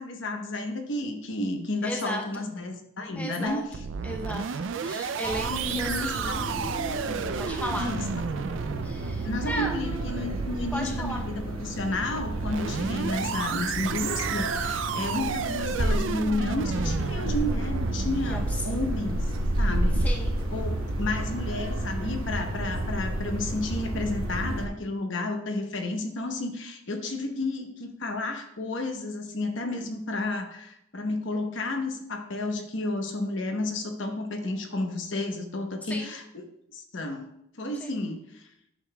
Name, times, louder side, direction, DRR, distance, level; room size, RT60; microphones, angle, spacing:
voice 1, 0.0-3.6 5.5-6.7 7.7-8.1 9.2-19.3 19.6-20.0 20.5-37.3 37.5-38.5, left 2 dB, 60° left, 4 dB, 0.9 m, -32 dB
voice 2, 1.8-2.4 3.1-3.6 4.0-4.5 4.8-6.3 7.4-7.9 8.8-9.7 10.7-11.2 18.3-18.8 20.0-20.4 35.8-36.1 37.8-37.9, equal, 5° left, 1 dB, 0.6 m, -35 dB
sound 1, 3.5-20.3, right 6 dB, 60° right, 0.4 m, -33 dB
sound 2, 5.2-24.7, right 1 dB, 80° right, 1.1 m, -31 dB
11.0 x 6.6 x 2.2 m, 0.79 s
head